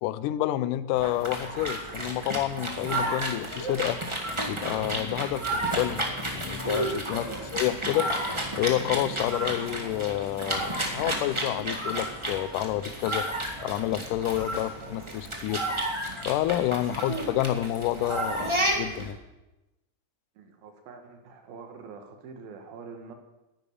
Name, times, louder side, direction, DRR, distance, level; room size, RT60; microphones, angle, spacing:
voice 1, 0.0-4.0 4.5-6.0 6.3-8.1 8.5-13.3 13.6-15.6 16.3-19.2, left 14 dB, 80° left, 15 dB, 2.0 m, -29 dB
sound 1, 0.9-19.1, right 1 dB, 20° right, 0.8 m, -32 dB
voice 2, 7.1-7.4 16.8-17.0 20.4-23.1, right 5 dB, 90° right, 5 dB, 3.4 m, -45 dB
10.5 x 9.8 x 9.9 m, 1.0 s
omnidirectional pair, 4.1 m